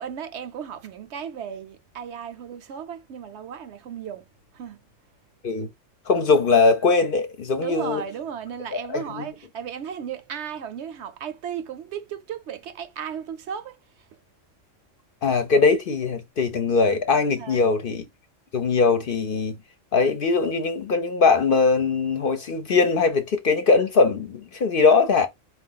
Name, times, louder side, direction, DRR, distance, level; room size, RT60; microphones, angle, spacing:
voice 1, 0.0-4.3 4.5-4.8 7.6-13.8 17.4-17.7, right 8 dB, 70° right, 0.9 m, -35 dB
voice 2, 6.1-8.0 8.9-9.3 15.2-18.0 18.5-19.6 19.9-25.3, left 4 dB, 55° left, 0.7 m, -21 dB
4.6 x 2.4 x 3.8 m
omnidirectional pair, 1.3 m